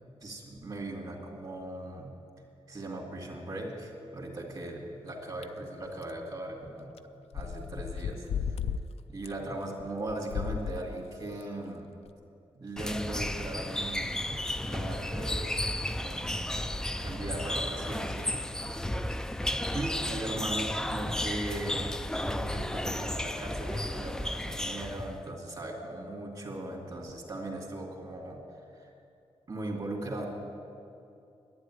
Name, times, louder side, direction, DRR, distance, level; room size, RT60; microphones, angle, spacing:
voice 1, 0.2-2.1 2.7-6.9 7.3-8.6 9.1-11.9 12.5-16.7 17.0-18.4 19.7-21.9 22.2-28.4 28.7-28.9 29.5-30.3, right 1 dB, 40° right, 0 dB, 2.4 m, -38 dB
sound 1, 5.4-5.5 6.0-6.1 7.0-7.1 7.3-8.8 9.2-9.3 10.1-10.8 11.4-11.5 12.1-12.2, left 7 dB, 80° left, 0.4 m, -34 dB
sound 2, 12.8-25.2, left 1 dB, 5° left, 0.4 m, -33 dB
11.5 x 9.3 x 9.8 m, 2.6 s
wide cardioid pair, 135°, 10 cm